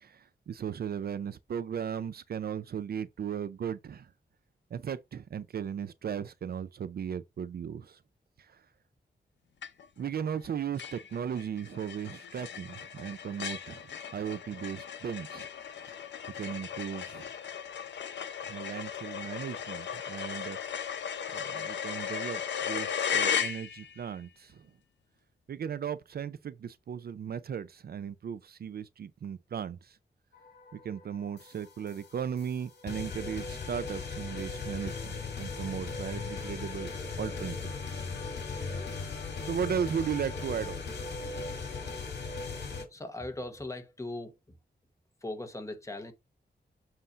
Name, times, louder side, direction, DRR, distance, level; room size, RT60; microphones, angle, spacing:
voice 1, 0.0-4.1 4.7-8.0 10.0-13.8 14.1-15.5 15.9-16.0 16.4-17.3 18.5-20.6 21.3-24.6 25.5-30.0 30.7-36.9 37.2-38.1 38.5-39.0 39.4-40.8, right 8 dB, 60° right, 0.4 m, -36 dB
sound 1, 9.6-10.1 10.4-10.5 10.8-24.1, left 7 dB, 85° left, 0.6 m, -36 dB
sound 2, 30.3-42.8, left 4 dB, 65° left, 1.9 m, -38 dB
voice 2, 42.6-44.6 45.2-46.1, left 2 dB, 15° left, 0.9 m, -40 dB
7.6 x 2.7 x 5.4 m
wide cardioid pair, 160°, 18 cm